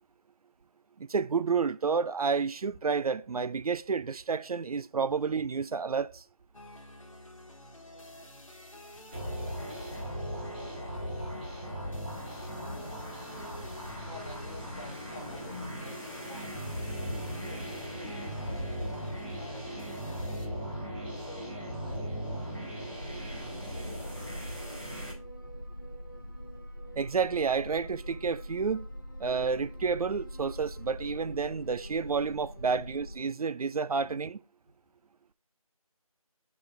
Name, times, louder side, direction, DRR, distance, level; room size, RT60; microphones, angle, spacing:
voice 1, 1.0-6.2 27.0-28.9 29.2-34.4, right 5 dB, 80° right, 0.4 m, -30 dB
sound 1, 6.5-20.5, left 1 dB, 60° left, 1.3 m, -49 dB
sound 2, 9.1-25.1, equal, 15° right, 1.5 m, -38 dB
voice 2, 9.3-10.0 10.5-10.7 14.0-16.7 17.0-20.5 21.1-22.1 23.5-23.7 26.2-26.3 32.6-32.8 34.0-34.2, left 1 dB, 20° left, 1.5 m, -49 dB
sound 3, 23.0-33.2, equal, 35° left, 0.4 m, -43 dB
8.0 x 4.8 x 2.6 m
figure-of-eight pair, 175°, 19 cm